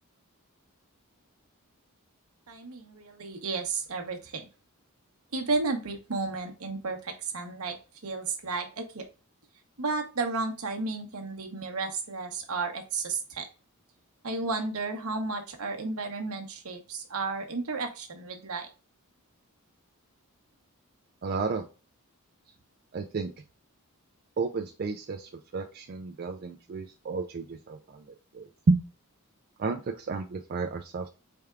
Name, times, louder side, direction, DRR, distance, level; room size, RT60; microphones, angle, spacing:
voice 1, 2.5-4.5 5.3-7.8 8.0-9.0 9.8-13.5 14.2-18.7, right 3 dB, 70° right, 4 dB, 0.9 m, -33 dB
voice 2, 21.2-21.7 22.9-23.3 24.4-28.0 28.3-28.8 29.6-31.1, right 4 dB, 45° right, 4 dB, 0.4 m, -31 dB
4.6 x 3.4 x 2.3 m, 0.33 s
head